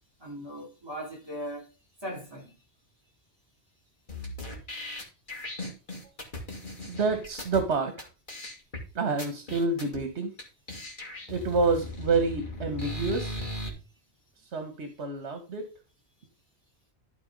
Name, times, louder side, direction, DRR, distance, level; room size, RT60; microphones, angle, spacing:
voice 1, 0.2-1.7 2.0-2.5, equal, 20° right, 4.0 m, -38 dB
sound 1, 4.1-7.6 8.0-8.1 8.3-8.8 9.2-10.0 10.4-10.5 10.7-13.7, left 1 dB, 45° left, 2.6 m, -38 dB
voice 2, 6.8-8.1 8.9-10.3 11.3-13.4 14.4-15.7, right 3 dB, 80° right, 1.6 m, -28 dB
12.5 x 4.6 x 5.2 m
omnidirectional pair, 1.1 m